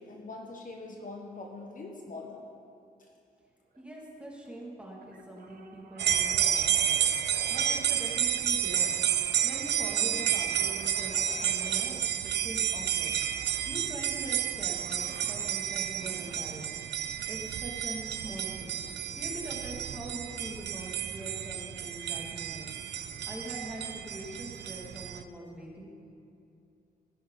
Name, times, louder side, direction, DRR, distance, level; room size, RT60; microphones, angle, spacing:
voice 1, 0.0-2.4, left 3 dB, 50° left, 1 dB, 1.4 m, -43 dB
sound 1, 3.7-4.0 4.3-4.4 5.0-8.2 8.7-11.9 13.2-13.6 14.8-15.7, right 4 dB, 60° right, 1.0 m, -49 dB
voice 2, 3.8-7.0 7.5-8.9 9.4-13.1 13.7-16.7 17.3-18.8 19.2-22.7 23.2-25.9, right 1 dB, 5° right, -4 dB, 2.5 m, -43 dB
sound 2, 6.0-25.2, right 9 dB, 90° right, 0.5 m, -31 dB
16.0 x 9.1 x 4.1 m, 2.6 s
cardioid pair, 90°, 17 cm